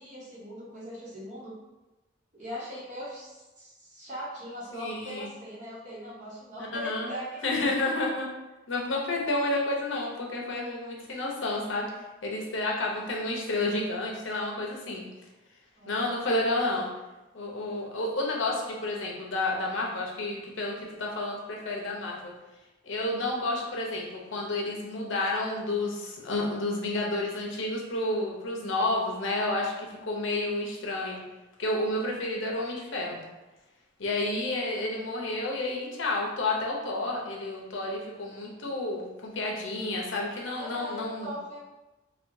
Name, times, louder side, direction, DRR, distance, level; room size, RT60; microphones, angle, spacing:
voice 1, 0.0-1.5 2.3-7.7 15.8-16.1 40.6-41.6, equal, 35° right, -7 dB, 1.1 m, -40 dB
voice 2, 4.7-5.3 6.7-7.1 7.4-8.3 8.7-11.9 12.2-15.0 15.9-16.9 17.3-22.3 22.8-31.2 31.6-33.2 34.0-41.3, left 2 dB, 75° left, -2 dB, 0.7 m, -30 dB
4.2 x 2.3 x 2.6 m, 1.1 s
head